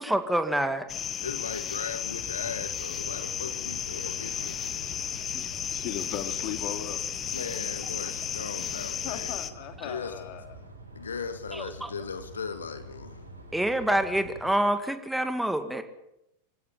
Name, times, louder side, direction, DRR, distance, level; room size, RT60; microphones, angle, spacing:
voice 1, 0.0-0.9 5.3-5.4 11.5-11.9 13.5-15.8, right 1 dB, 5° right, 8 dB, 2.3 m, -27 dB
sound 1, 0.9-9.5, left 8 dB, 25° left, 1.5 m, -34 dB
voice 2, 1.2-5.2 7.3-10.3 10.9-13.2, left 5 dB, 70° left, 10 dB, 1.9 m, -38 dB
sound 2, 2.0-14.5, right 1 dB, 80° right, 5.3 m, -47 dB
voice 3, 5.2-7.0 8.7-10.6 13.5-14.0, left 11 dB, 40° left, 7 dB, 3.2 m, -39 dB
27.0 x 17.0 x 8.8 m, 0.85 s
figure-of-eight pair, 90°, 0 cm